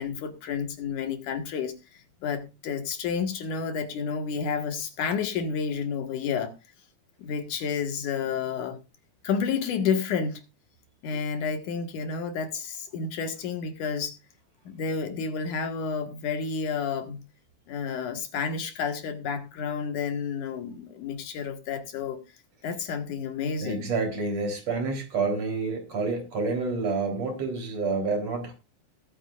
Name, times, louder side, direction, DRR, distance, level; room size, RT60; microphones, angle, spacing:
voice 1, 0.0-1.7 2.2-6.5 7.2-8.8 9.2-10.4 11.0-14.1 14.7-17.2 17.7-22.2 22.6-23.9, left 6 dB, 85° left, 3.2 m, -30 dB
voice 2, 23.6-28.5, right 4 dB, 55° right, 4.9 m, -28 dB
20.5 x 9.0 x 2.5 m
omnidirectional pair, 3.4 m